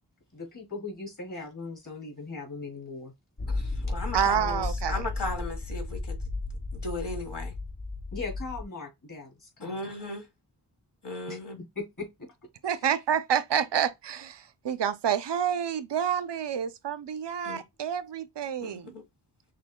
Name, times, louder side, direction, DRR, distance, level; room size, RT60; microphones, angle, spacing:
voice 1, 0.3-3.1 8.1-9.8 11.3-11.4 11.7-12.3, left 3 dB, 45° left, 3.0 m, -39 dB
sound 1, 3.4-8.6, left 2 dB, 25° left, 0.6 m, -34 dB
voice 2, 3.5-6.2 6.7-7.5 9.6-10.3 11.0-11.6 17.4-17.6 18.6-19.0, left 2 dB, 70° left, 1.5 m, -36 dB
voice 3, 4.1-5.1 12.6-18.9, right 8 dB, 70° right, 0.6 m, -28 dB
6.1 x 3.0 x 2.2 m
wide cardioid pair, 70°, 43 cm